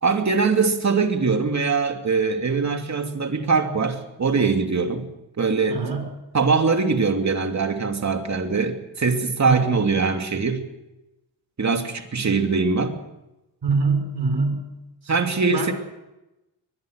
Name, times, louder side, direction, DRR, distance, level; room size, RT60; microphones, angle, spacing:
voice 1, 0.0-5.1 5.4-5.8 6.3-10.7 11.6-13.0 15.1-15.7, right 4 dB, 35° right, 5 dB, 2.7 m, -22 dB
voice 2, 5.7-6.1 9.5-9.6 13.6-14.7 15.5-15.7, right 4 dB, 50° right, 6 dB, 4.9 m, -24 dB
23.5 x 20.0 x 6.5 m, 0.96 s
cardioid pair, 110°, 48 cm